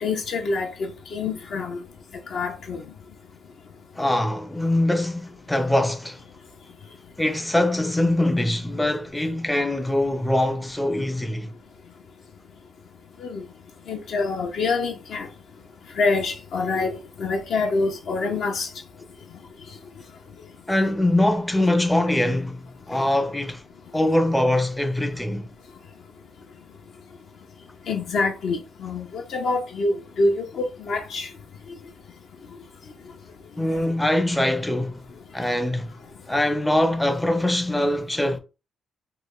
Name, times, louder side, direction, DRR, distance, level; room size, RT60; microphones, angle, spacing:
voice 1, 0.0-1.8 2.3-2.8 13.2-13.4 13.9-15.3 16.0-18.7 27.9-31.3, left 3 dB, 70° left, 0.6 m, -26 dB
voice 2, 4.0-6.2 7.2-11.5 20.7-23.6 23.9-25.5 33.6-35.0 35.3-35.9 36.3-38.4, left 1 dB, 10° left, 0.4 m, -23 dB
3.1 x 2.1 x 3.7 m
cardioid pair, 70°, 0 cm